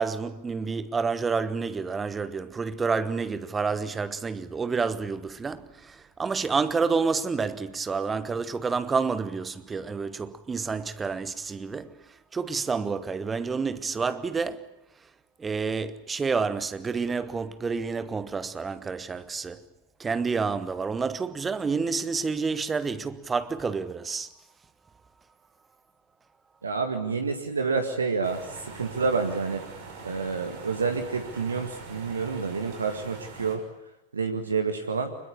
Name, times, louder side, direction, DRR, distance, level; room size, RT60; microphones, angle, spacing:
voice 1, 0.0-14.7 15.4-19.7 20.0-24.3, right 5 dB, 15° right, 1.1 m, -29 dB
voice 2, 26.6-29.6 30.0-33.6 34.1-35.2, right 4 dB, 75° right, 1.9 m, -28 dB
sound 1, 28.2-33.6, right 4 dB, 50° right, 6.3 m, -43 dB
25.0 x 22.0 x 8.5 m
figure-of-eight pair, 90°, 0 cm